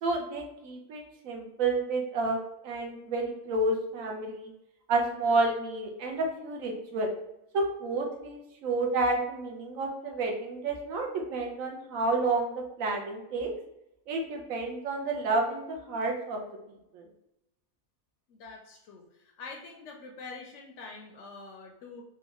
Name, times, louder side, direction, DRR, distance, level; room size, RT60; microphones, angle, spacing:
voice 1, 0.0-4.5 4.9-7.1 7.5-13.5 14.1-16.4 16.9-17.0, right 2 dB, 70° right, 2 dB, 1.0 m, -30 dB
voice 2, 18.3-19.0 19.4-22.0, left 4 dB, 65° left, 0 dB, 0.8 m, -45 dB
3.9 x 2.2 x 2.9 m, 0.86 s
omnidirectional pair, 1.5 m